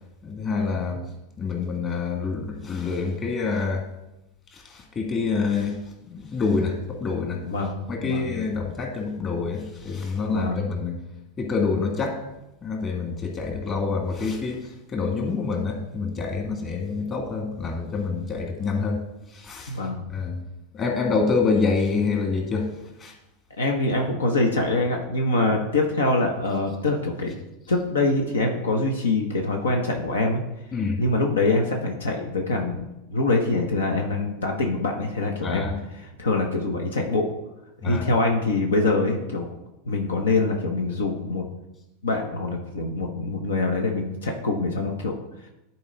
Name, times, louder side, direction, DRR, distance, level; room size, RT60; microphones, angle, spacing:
voice 1, 0.2-1.0 1.4-3.8 4.5-5.8 6.1-7.4 7.9-11.0 11.4-12.2 12.6-14.6 14.9-19.0 19.3-19.7 20.1-20.4 20.7-22.7 23.0-23.1 30.7-31.0 35.4-35.7 37.8-38.1, left 4 dB, 35° left, 2 dB, 2.0 m, -26 dB
voice 2, 7.4-8.3 10.3-10.6 19.7-20.0 23.6-27.3 27.7-30.4 31.0-32.8 33.1-35.7 36.0-37.3 37.8-39.5 39.8-41.4 42.0-45.2, left 2 dB, 85° left, 2 dB, 0.9 m, -24 dB
11.0 x 4.4 x 3.8 m, 0.92 s
hypercardioid pair, 95°, 0 cm